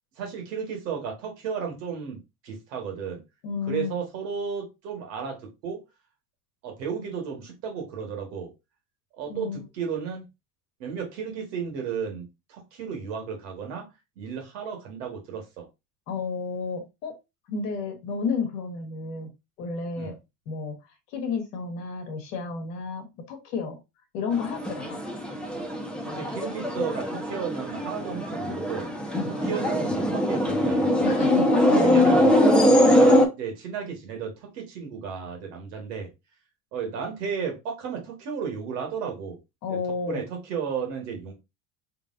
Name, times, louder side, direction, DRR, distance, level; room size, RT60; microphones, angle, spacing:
voice 1, 0.2-3.2 3.7-5.8 6.6-8.5 9.2-10.3 10.8-13.9 14.2-15.7 20.0-20.2 26.0-28.9 29.3-31.3 31.8-32.4 32.8-36.1 36.7-39.4 39.7-39.8 40.0-41.3, right 6 dB, 85° right, 1.6 m, -34 dB
voice 2, 3.4-4.0 9.3-9.6 16.1-17.1 17.5-19.3 19.6-20.1 20.5-20.8 21.1-23.8 24.1-25.0 29.1-29.3 31.0-32.2 39.6-40.2, left 5 dB, 90° left, 1.3 m, -31 dB
sound 1, 24.3-33.3, left 1 dB, ahead, 0.9 m, -22 dB
4.0 x 3.3 x 2.6 m
hypercardioid pair, 75°, 47 cm